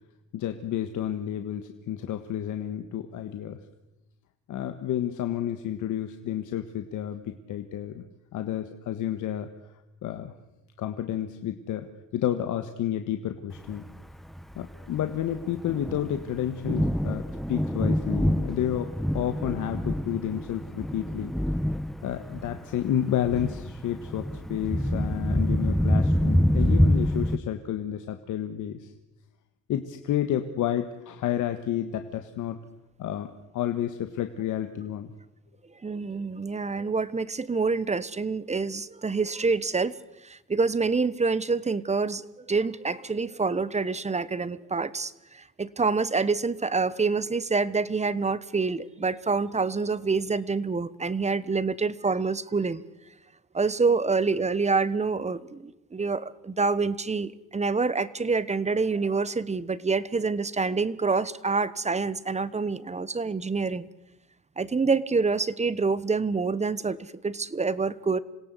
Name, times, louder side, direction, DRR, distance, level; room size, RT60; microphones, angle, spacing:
voice 1, 0.3-3.6 4.5-8.0 8.3-9.5 10.0-10.3 10.8-11.9 12.1-13.8 14.6-17.2 17.5-21.3 22.0-28.9 29.7-32.6 33.0-33.3 33.5-35.1, left 11 dB, 80° left, 7 dB, 1.5 m, -30 dB
Thunder, 13.7-27.4, equal, ahead, 0.9 m, -27 dB
voice 2, 35.8-40.0 40.2-52.8 53.5-63.9 64.6-68.2, right 4 dB, 20° right, 18 dB, 1.1 m, -27 dB
26.5 x 17.0 x 8.3 m, 0.96 s
cardioid pair, 90°, 30 cm